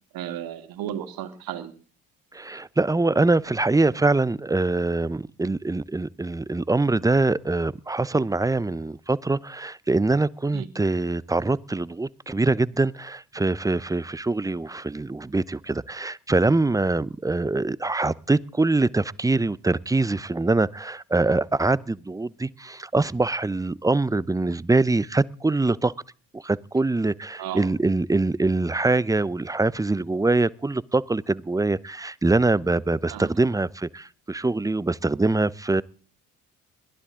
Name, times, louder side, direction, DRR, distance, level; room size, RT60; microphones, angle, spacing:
voice 1, 0.1-1.7 10.5-10.7 27.4-27.7 33.1-33.3, right 11 dB, 60° right, 8 dB, 2.5 m, -34 dB
voice 2, 2.3-25.9 26.3-35.8, right 2 dB, 10° right, 21 dB, 0.7 m, -24 dB
22.0 x 15.5 x 3.8 m, 0.40 s
hypercardioid pair, 55°, 39 cm